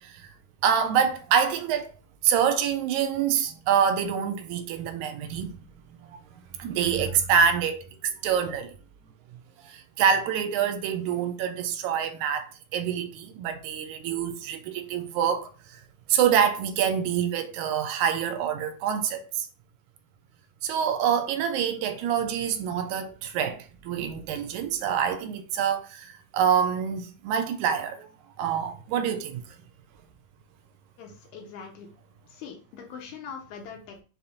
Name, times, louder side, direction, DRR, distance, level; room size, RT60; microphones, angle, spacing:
voice 1, 0.6-1.9 2.2-6.2 6.6-8.8 9.6-15.8 16.1-19.5 20.6-28.1 28.4-29.4, right 8 dB, 80° right, 1.9 m, -26 dB
voice 2, 31.0-31.9 32.3-34.0, left 6 dB, 80° left, 2.2 m, -42 dB
6.7 x 2.8 x 2.5 m
omnidirectional pair, 3.5 m